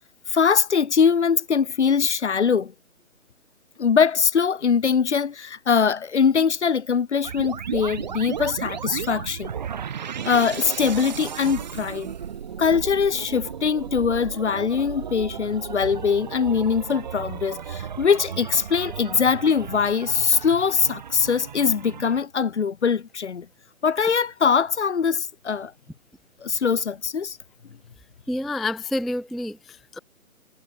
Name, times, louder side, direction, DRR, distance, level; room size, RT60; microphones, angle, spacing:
voice 1, 0.3-2.7 3.8-9.5 10.2-12.1 12.6-23.5 23.8-25.7 26.4-27.4, left 6 dB, 50° left, 1.1 m, -22 dB
sound 1, 7.2-22.2, right 8 dB, 30° right, 2.6 m, -34 dB
voice 2, 28.3-30.0, left 1 dB, ahead, 0.4 m, -28 dB
hypercardioid pair, 170°, 42 cm